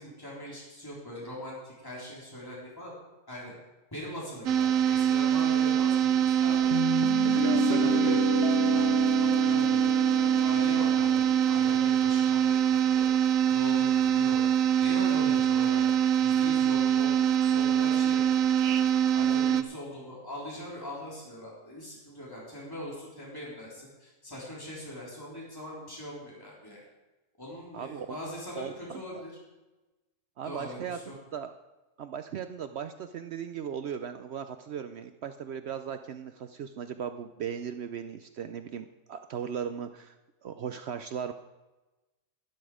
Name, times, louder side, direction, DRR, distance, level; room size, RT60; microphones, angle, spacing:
voice 1, 0.0-2.9 3.3-3.5 3.9-6.7 7.2-8.3 8.7-13.1 13.5-14.4 14.8-15.9 16.2-18.3 18.6-18.7 19.1-26.8 27.4-29.3 30.4-31.1, left 1 dB, 15° left, -6 dB, 3.7 m, -41 dB
sound 1, 4.5-19.6, right 9 dB, 85° right, 1.1 m, -24 dB
Guitar, 6.7-11.8, left 11 dB, 65° left, 0.8 m, -33 dB
voice 2, 7.2-8.3 27.7-28.1 28.6-29.2 30.4-31.6 32.0-40.2 40.4-41.3, right 8 dB, 65° right, 9 dB, 0.8 m, -37 dB
12.0 x 11.5 x 4.9 m, 1.1 s
omnidirectional pair, 1.4 m